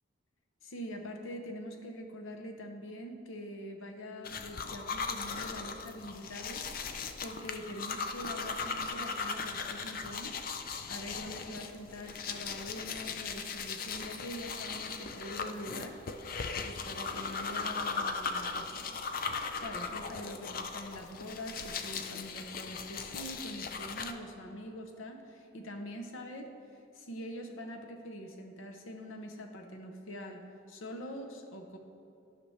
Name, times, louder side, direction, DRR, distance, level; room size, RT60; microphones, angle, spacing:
voice 1, 0.6-6.7 7.2-10.3 10.9-16.0 16.6-19.0 19.5-26.5 26.9-31.8, equal, 85° left, 4 dB, 0.8 m, -44 dB
sound 1, 4.2-24.1, left 5 dB, 45° left, 0.5 m, -38 dB
13.0 x 6.0 x 3.3 m, 2.7 s
head